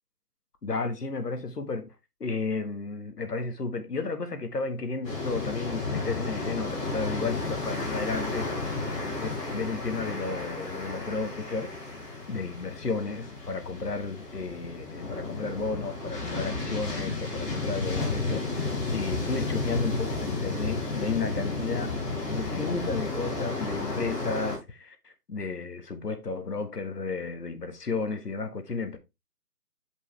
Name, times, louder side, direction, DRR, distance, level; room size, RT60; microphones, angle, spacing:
voice 1, 0.6-1.9 2.2-8.8 9.2-11.7 12.3-21.9 22.3-29.0, left 4 dB, 80° left, 1.7 m, -33 dB
sound 1, 5.0-24.6, left 3 dB, 20° left, 4.7 m, -32 dB
8.2 x 5.5 x 3.3 m
figure-of-eight pair, 155°, 47 cm